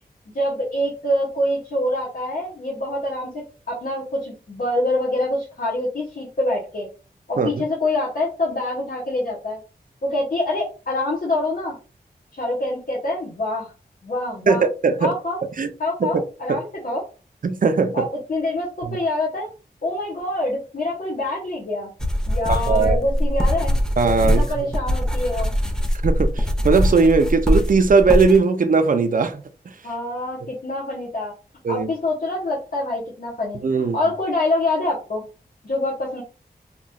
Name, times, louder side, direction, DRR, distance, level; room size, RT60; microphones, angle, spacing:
voice 1, 0.3-6.9 7.3-9.6 10.0-11.7 12.3-13.7 14.0-14.6 15.0-15.4 15.8-17.0 17.9-19.5 19.8-21.9 22.3-23.8 24.2-25.5 29.8-31.3 31.7-35.2 35.6-36.2, left 1 dB, 60° left, 1.1 m, -25 dB
voice 2, 14.5-15.1 15.6-15.7 16.0-16.2 16.5-16.6 17.4-18.1 22.5-23.0 24.0-24.7 26.0-29.4 31.6-31.9 33.6-34.0, right 4 dB, 55° right, 0.5 m, -19 dB
sound 1, 22.0-28.4, equal, 5° left, 0.6 m, -22 dB
3.0 x 2.8 x 2.3 m
cardioid pair, 45°, 17 cm